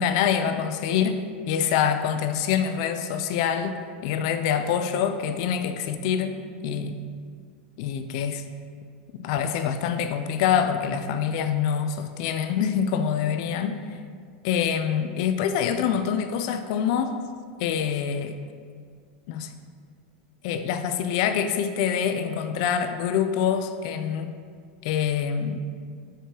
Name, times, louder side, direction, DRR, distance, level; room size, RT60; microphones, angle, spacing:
voice 1, 0.0-3.8 4.0-6.4 6.6-7.0 7.8-8.4 9.1-13.8 14.4-17.2 17.6-18.4 19.3-19.5 20.4-24.3 24.8-25.6, left 8 dB, 40° left, 9 dB, 0.3 m, -25 dB
5.2 x 4.9 x 3.7 m, 2.1 s
supercardioid pair, 180°, 5 cm